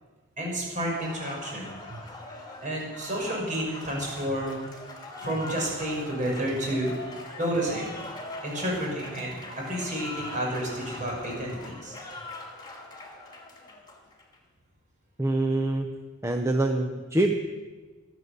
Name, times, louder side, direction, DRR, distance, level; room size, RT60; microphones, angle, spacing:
voice 1, 0.4-2.0 2.6-4.7 5.2-6.9 7.4-7.9 8.4-11.9, right 1 dB, 40° right, -2 dB, 5.8 m, -30 dB
Applause, 0.7-14.4, left 2 dB, 20° left, 2.6 m, -42 dB
voice 2, 15.2-15.9 16.2-17.3, right 2 dB, 15° right, 4 dB, 0.8 m, -25 dB
24.0 x 8.3 x 6.8 m, 1.3 s
head